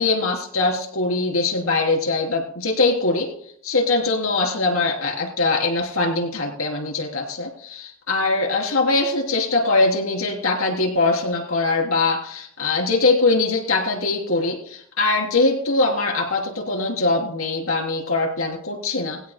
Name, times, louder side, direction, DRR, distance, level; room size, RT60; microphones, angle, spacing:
voice 1, 0.0-3.3 3.6-19.2, left 3 dB, 75° left, 1 dB, 3.9 m, -22 dB
21.0 x 16.0 x 2.3 m, 0.66 s
head